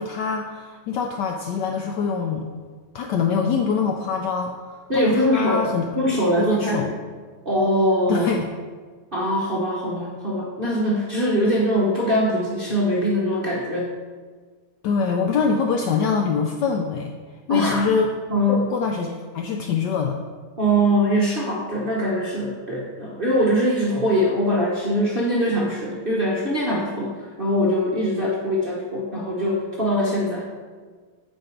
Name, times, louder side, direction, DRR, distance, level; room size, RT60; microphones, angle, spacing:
voice 1, 0.0-2.5 2.9-5.9 6.4-6.9 8.1-8.5 14.8-17.1 17.5-18.1 18.5-20.2, left 5 dB, 85° left, 3 dB, 0.9 m, -24 dB
voice 2, 4.9-5.7 6.0-6.9 7.4-8.3 9.1-13.9 17.5-17.9 18.3-18.6 20.6-30.4, equal, 50° right, -4 dB, 0.6 m, -22 dB
8.8 x 4.6 x 4.4 m, 1.5 s
omnidirectional pair, 2.4 m